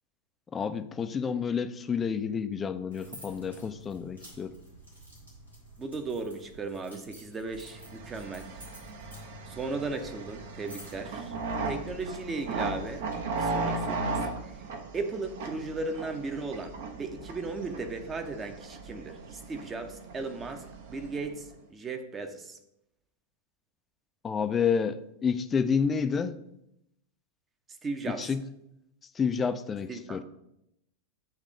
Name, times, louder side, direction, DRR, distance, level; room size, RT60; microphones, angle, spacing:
voice 1, 0.5-4.5 24.2-26.4 28.0-28.4 29.1-30.2, left 6 dB, 20° left, 0.4 m, -29 dB
sound 1, 2.9-13.2, right 1 dB, 80° right, 2.0 m, -50 dB
voice 2, 5.8-8.5 9.5-11.3 11.7-13.1 13.3-14.6 14.9-22.6 27.8-28.2 29.9-30.2, right 3 dB, 20° right, 0.7 m, -36 dB
sound 2, 7.6-21.5, right 3 dB, 55° right, 0.7 m, -37 dB
8.0 x 3.2 x 5.0 m
figure-of-eight pair, 90°, 0 cm